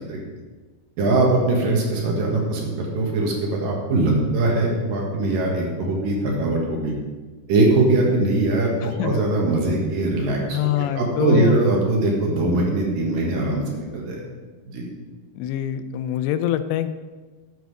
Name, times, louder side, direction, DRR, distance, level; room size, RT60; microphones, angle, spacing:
voice 1, 1.0-6.9 7.5-14.2 14.7-14.8, right 2 dB, 60° right, -1 dB, 2.9 m, -21 dB
voice 2, 8.8-9.2 10.5-11.6 15.4-16.9, left 11 dB, 85° left, 12 dB, 2.8 m, -25 dB
12.5 x 8.1 x 4.8 m, 1.3 s
omnidirectional pair, 5.0 m